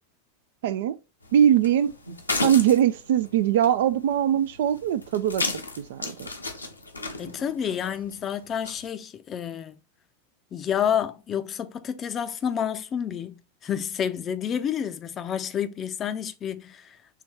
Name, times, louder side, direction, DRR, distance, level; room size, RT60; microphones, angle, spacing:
voice 1, 0.6-1.0 1.3-1.9 2.4-5.4 5.8-6.3, right 10 dB, 55° right, 0.3 m, -21 dB
sound 1, 1.2-8.9, left 2 dB, 80° left, 0.8 m, -35 dB
voice 2, 7.2-9.7 10.5-17.0, left 8 dB, 25° left, 0.5 m, -29 dB
5.6 x 3.0 x 3.1 m
figure-of-eight pair, 90°, 0 cm